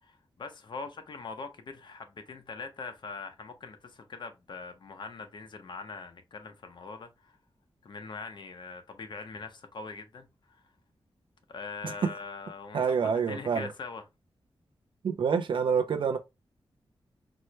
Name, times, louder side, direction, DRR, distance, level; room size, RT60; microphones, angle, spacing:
voice 1, 0.0-7.4 7.8-10.6 11.5-12.9 13.3-14.0, left 4 dB, 55° left, 0.7 m, -42 dB
voice 2, 12.7-13.7 15.0-16.2, right 6 dB, 65° right, 0.4 m, -27 dB
4.3 x 2.1 x 3.0 m
wide cardioid pair, 165°, 9 cm